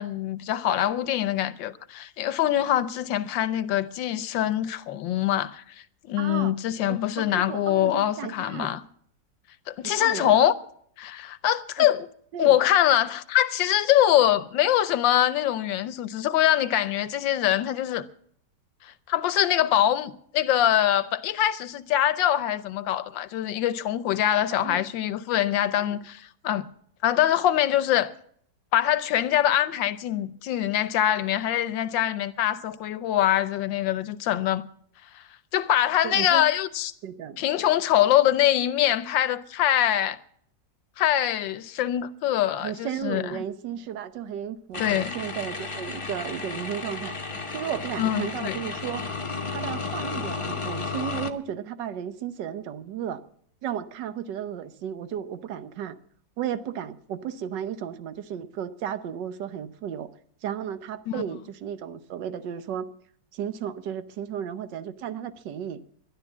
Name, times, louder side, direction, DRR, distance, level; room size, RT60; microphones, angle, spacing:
voice 1, 0.0-5.6 6.1-8.8 9.7-10.5 11.0-12.1 12.4-18.1 18.8-26.7 27.0-28.1 28.7-34.7 35.1-35.2 35.5-36.9 37.4-40.2 41.0-43.4 44.8-45.1 48.0-48.7 61.1-61.2, left 12 dB, 85° left, 1.5 m, -24 dB
voice 2, 6.2-6.5 6.9-8.7 9.8-10.3 11.8-11.9 12.3-12.5 24.5-24.8 25.8-26.0 36.0-36.5 37.0-37.4 42.5-47.2 47.5-49.0 49.5-53.2 53.6-55.9 56.4-60.1 60.4-62.9 63.3-65.8, right 9 dB, 75° right, 1.5 m, -34 dB
sound 1, 44.7-51.3, left 4 dB, 25° left, 0.7 m, -33 dB
12.5 x 11.0 x 7.2 m
omnidirectional pair, 2.0 m